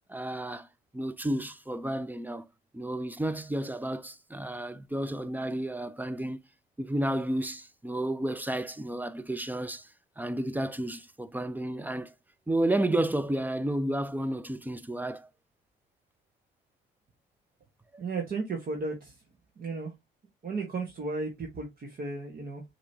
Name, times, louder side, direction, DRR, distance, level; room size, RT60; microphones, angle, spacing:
voice 1, 0.1-0.7 0.9-2.5 2.7-6.4 6.8-9.9 10.2-12.1 12.5-15.3 17.9-18.0, right 1 dB, 10° right, 0.4 m, -31 dB
voice 2, 18.0-19.1 19.6-19.9 20.4-22.6, right 3 dB, 45° right, 1.2 m, -34 dB
6.0 x 3.0 x 2.8 m
cardioid pair, 90°, 20 cm